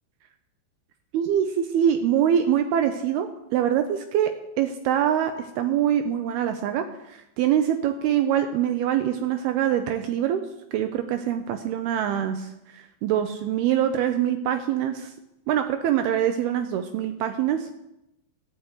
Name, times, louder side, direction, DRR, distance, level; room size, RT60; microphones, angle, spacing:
voice 1, 1.1-10.4 10.7-15.1 15.5-17.7, right 10 dB, 80° right, 7 dB, 2.4 m, -24 dB
13.0 x 6.4 x 8.3 m, 0.87 s
omnidirectional pair, 5.0 m